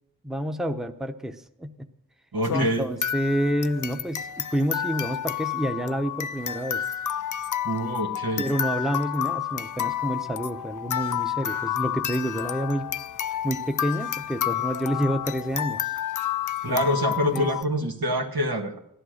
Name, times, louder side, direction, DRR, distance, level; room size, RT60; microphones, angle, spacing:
voice 1, 0.2-1.7 2.5-6.8 8.4-12.9 13.4-15.9 16.7-16.8 17.3-17.5, equal, ahead, 7 dB, 0.8 m, -28 dB
voice 2, 2.3-2.9 7.6-8.5 16.6-18.8, equal, 85° right, 1 dB, 1.8 m, -26 dB
sound 1, 2.4-17.6, left 10 dB, 60° left, 0.5 m, -30 dB
16.0 x 11.5 x 6.4 m, 0.79 s
wide cardioid pair, 55°, 36 cm